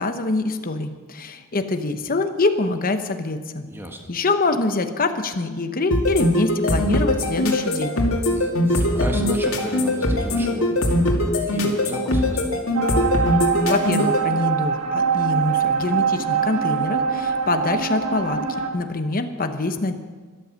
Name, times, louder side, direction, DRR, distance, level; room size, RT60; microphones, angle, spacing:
voice 1, 0.0-3.7 4.1-8.0 13.5-20.0, left 2 dB, 40° left, 7 dB, 0.9 m, -25 dB
voice 2, 3.7-4.0 8.2-10.9 11.3-12.7, right 1 dB, 10° right, 2 dB, 1.7 m, -34 dB
sound 1, 5.9-14.2, left 1 dB, 65° left, 2.3 m, -21 dB
sound 2, 12.7-18.7, right 6 dB, 70° right, 1.9 m, -23 dB
13.5 x 12.5 x 6.4 m, 1.4 s
head